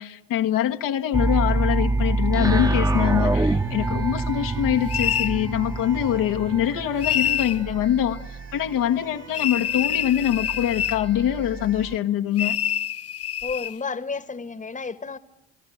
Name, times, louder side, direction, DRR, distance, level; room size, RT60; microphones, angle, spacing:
voice 1, 0.0-12.6, left 11 dB, 70° left, 1.6 m, -24 dB
sound 1, 1.1-7.9, right 2 dB, 10° right, 1.3 m, -24 dB
sound 2, 2.8-12.0, right 5 dB, 45° right, 2.7 m, -40 dB
sound 3, 4.9-5.4 7.0-7.6 9.3-11.0 12.4-13.8, left 10 dB, 45° left, 0.8 m, -26 dB
voice 2, 13.4-15.2, left 4 dB, 20° left, 1.5 m, -31 dB
29.5 x 17.5 x 9.3 m
supercardioid pair, 65°, 34 cm